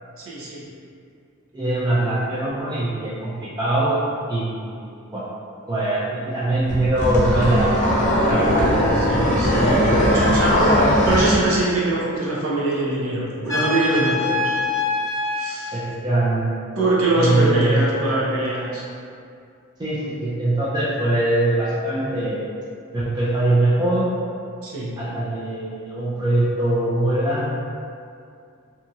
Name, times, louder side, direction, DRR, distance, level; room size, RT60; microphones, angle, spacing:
voice 1, 0.2-0.7 9.1-10.6 11.0-14.4 15.3-15.8 16.8-18.8 24.6-24.9, right 2 dB, 85° right, -6 dB, 0.7 m, -23 dB
voice 2, 1.5-4.0 4.3-5.2 5.7-7.7 7.9-8.8 9.1-9.3 15.7-16.4 17.1-17.8 19.8-22.4 22.9-24.1 25.0-27.5, right 1 dB, 20° right, -8 dB, 0.3 m, -22 dB
sound 1, 6.7-11.4, equal, 35° left, 0.5 m, -19 dB
Trumpet, 13.5-15.5, left 3 dB, 15° left, 0.9 m, -24 dB
2.7 x 2.3 x 2.7 m, 2.3 s
head